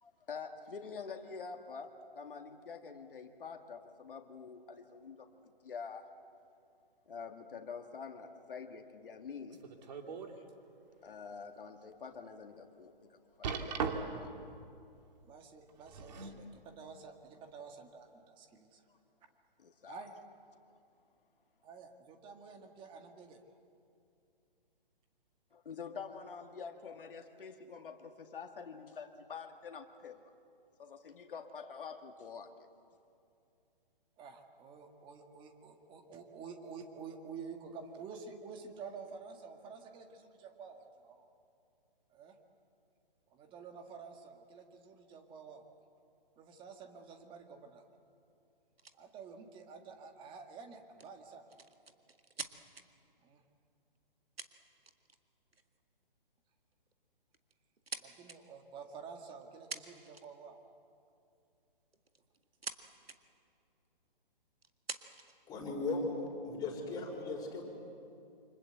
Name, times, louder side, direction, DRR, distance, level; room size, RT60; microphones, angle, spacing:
voice 1, 0.0-5.3 5.6-6.1 7.1-9.6 10.4-10.5 11.0-14.3 19.6-20.0 25.5-30.2 30.8-32.5, left 5 dB, 65° left, 4 dB, 2.1 m, -47 dB
sound 1, 9.5-10.3 10.9-11.0 11.6-11.7 13.4-14.3 15.7-16.4 17.3-17.4, right 5 dB, 45° right, 2.6 m, -38 dB
voice 2, 15.2-18.8 19.9-20.2 21.6-23.4 34.2-41.3 42.1-42.4 43.3-45.6 46.4-47.8 49.0-51.4 53.2-53.4 58.0-60.6, right 5 dB, 15° right, 5 dB, 2.0 m, -50 dB
sound 2, 48.8-49.0 51.0-52.8 53.9-54.0 54.4-55.2 55.5-55.8 56.7-56.9 57.3-58.4 59.4-59.5 59.7-60.5 61.9-62.8 63.0-63.2 63.8-63.9 64.6-65.4 66.1-66.8, right 4 dB, 90° right, 1.9 m, -46 dB
voice 3, 65.5-67.6, left 3 dB, 15° left, -1 dB, 5.1 m, -37 dB
28.0 x 26.0 x 8.0 m, 2.5 s
hypercardioid pair, 140°, 29 cm